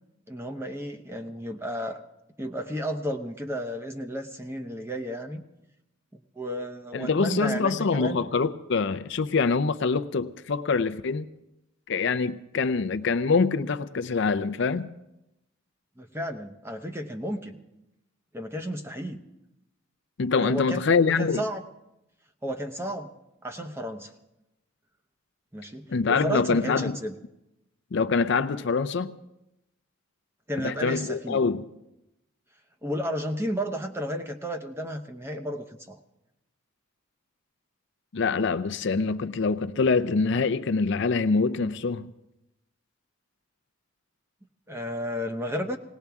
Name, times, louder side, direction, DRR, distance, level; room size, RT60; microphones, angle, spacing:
voice 1, 0.3-2.0 2.4-5.4 6.1-8.3 16.0-17.6 18.3-19.2 20.3-21.6 22.4-23.1 23.4-24.1 25.5-27.2 30.5-31.4 32.8-36.0 44.7-45.8, equal, 10° right, 0.8 m, -33 dB
voice 2, 6.9-11.3 11.9-14.9 20.2-21.4 25.9-27.0 27.9-29.1 30.6-31.7 38.1-42.1, left 4 dB, 55° left, 0.5 m, -25 dB
19.0 x 18.0 x 3.5 m
head